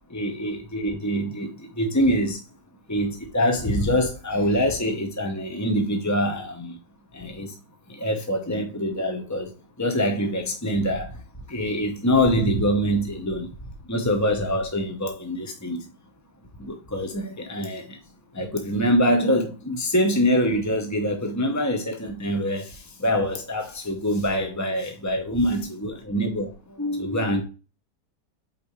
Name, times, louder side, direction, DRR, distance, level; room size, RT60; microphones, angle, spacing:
voice 1, 0.1-2.4 2.9-6.8 7.1-7.6 7.9-9.5 9.8-11.2 11.5-13.5 13.9-15.8 16.6-18.0 18.3-27.4, equal, 20° left, 0.5 m, -25 dB
8.3 x 4.1 x 3.1 m
omnidirectional pair, 1.8 m